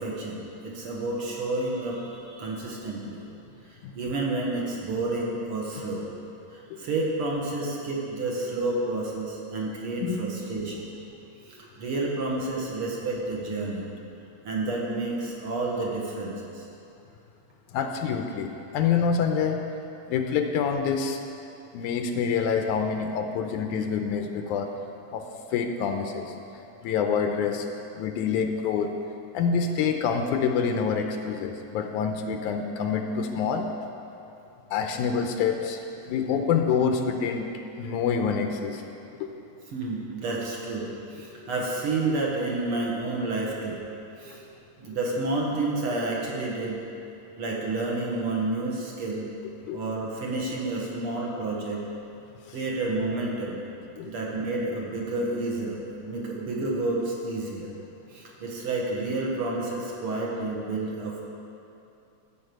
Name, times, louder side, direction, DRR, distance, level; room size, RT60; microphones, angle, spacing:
voice 1, 0.0-3.2 3.7-6.1 6.5-10.9 11.4-13.9 14.4-16.7 39.7-43.8 44.2-44.4 44.8-46.8 47.4-49.3 49.7-51.9 52.5-53.6 54.1-57.7 58.1-61.2, right 2 dB, 50° right, -3 dB, 2.1 m, -30 dB
voice 2, 17.7-19.6 20.1-21.2 21.7-24.7 25.1-25.2 25.5-26.3 26.8-27.6 28.0-28.9 29.3-33.7 34.7-35.8 36.1-37.5 37.8-38.8 39.2-39.3 49.7-49.8 54.0-54.1, left 6 dB, 85° left, 5 dB, 2.1 m, -26 dB
14.0 x 5.4 x 7.8 m, 2.7 s
omnidirectional pair, 3.5 m